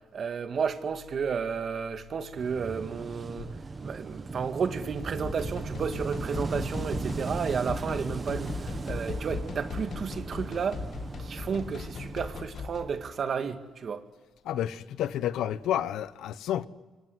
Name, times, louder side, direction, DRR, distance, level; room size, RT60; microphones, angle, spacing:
voice 1, 0.1-3.5 3.8-10.8 11.2-14.0, right 6 dB, 50° right, 2.0 m, -32 dB
Wind / Waves surf, 2.4-12.4, right 4 dB, 35° right, 1.5 m, -37 dB
sound 1, 4.8-13.0, left 5 dB, 55° left, 1.9 m, -39 dB
voice 2, 14.4-16.7, left 11 dB, 80° left, 1.0 m, -30 dB
28.0 x 24.5 x 8.1 m
cardioid pair, 90°, 0 cm